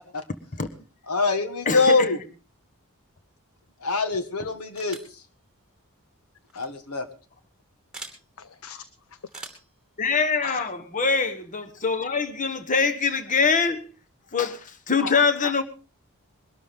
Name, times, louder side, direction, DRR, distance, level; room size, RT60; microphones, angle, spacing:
voice 1, 1.1-2.2 3.8-5.0 6.5-7.1, left 3 dB, 85° left, 9 dB, 1.7 m, -23 dB
voice 2, 1.7-2.1 10.0-13.8 14.3-15.6, left 5 dB, 35° left, 8 dB, 1.3 m, -24 dB
sound 1, 4.8-5.2 6.5-6.7 7.9-8.2 9.3-9.7, right 3 dB, 5° right, 2.6 m, -42 dB
voice 3, 8.4-9.2 10.4-10.7 15.0-15.5, left 6 dB, 65° left, 15 dB, 0.7 m, -38 dB
22.0 x 12.5 x 3.7 m, 0.34 s
head